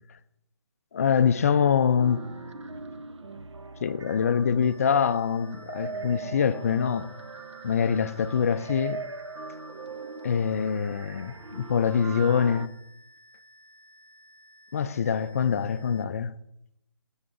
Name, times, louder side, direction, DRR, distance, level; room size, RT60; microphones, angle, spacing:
voice 1, 0.9-2.3 3.8-7.1 7.6-9.0 10.2-12.7 14.7-16.3, left 7 dB, 30° left, 0.4 m, -24 dB
sound 1, 2.0-12.7, right 3 dB, 85° right, 0.9 m, -41 dB
sound 2, 4.6-16.0, left 1 dB, 35° right, 0.8 m, -56 dB
18.0 x 7.9 x 2.6 m
hypercardioid pair, 160°, 15 cm